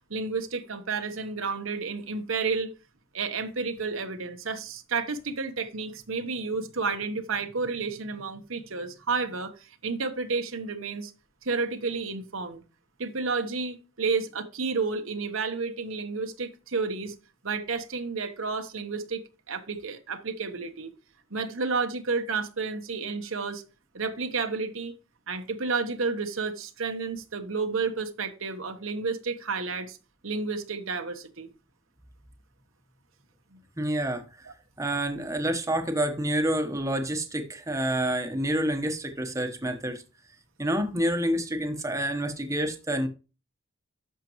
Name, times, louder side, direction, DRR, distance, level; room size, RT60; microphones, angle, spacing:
voice 1, 0.1-2.7 3.1-11.1 11.4-12.6 13.0-17.1 17.4-20.9 21.3-23.6 23.9-24.9 25.3-30.0 30.2-31.5 33.5-33.6, right 4 dB, 70° right, 1.1 m, -31 dB
voice 2, 33.8-34.3 34.8-40.0 40.6-43.1, right 1 dB, 15° right, 1.1 m, -28 dB
11.0 x 6.7 x 3.1 m
head